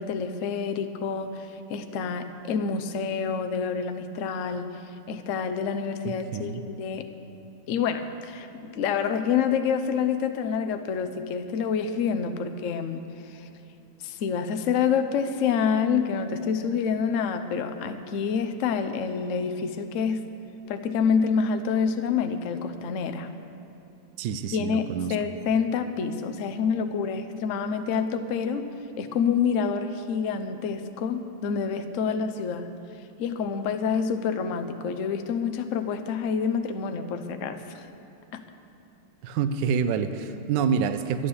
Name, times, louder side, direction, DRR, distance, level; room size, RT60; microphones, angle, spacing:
voice 1, 0.0-4.7 5.1-7.1 7.7-13.5 14.0-20.3 20.7-23.3 24.5-28.7 29.0-32.7 33.2-37.9 38.3-38.4, left 6 dB, 60° left, 8 dB, 0.9 m, -27 dB
voice 2, 6.1-6.6 24.2-25.2 39.2-41.3, right 6 dB, 70° right, 10 dB, 1.3 m, -27 dB
11.5 x 11.0 x 7.0 m, 2.9 s
omnidirectional pair, 2.1 m